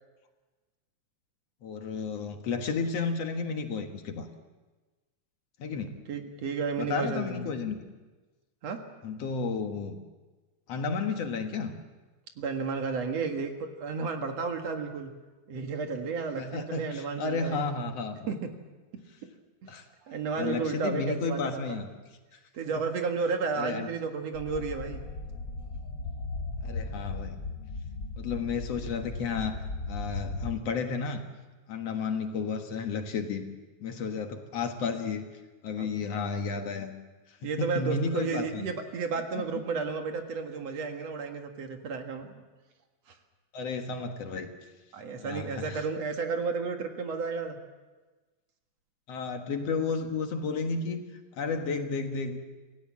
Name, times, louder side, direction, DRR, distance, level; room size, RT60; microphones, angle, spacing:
voice 1, 1.6-4.3 5.6-6.0 6.8-7.8 9.0-10.0 10.7-11.8 16.4-18.3 19.7-19.9 20.4-21.9 22.3-22.4 23.6-23.9 26.6-27.4 28.2-29.6 29.9-31.2 31.7-33.5 33.8-35.3 35.6-36.9 37.3-38.7 39.3-39.4 43.5-44.5 45.2-45.9 49.1-51.0 51.3-52.4, left 4 dB, 60° left, 5 dB, 2.5 m, -32 dB
voice 2, 6.1-7.5 8.6-8.8 12.4-15.1 15.5-17.6 18.3-18.4 19.6-19.7 20.1-21.8 22.5-25.0 35.8-35.9 37.4-42.4 43.1-43.2 44.9-47.6, right 5 dB, 60° right, 4 dB, 2.8 m, -32 dB
sound 1, 24.3-30.5, left 3 dB, 40° left, 2.5 m, -37 dB
27.0 x 17.0 x 7.4 m, 1.2 s
omnidirectional pair, 3.3 m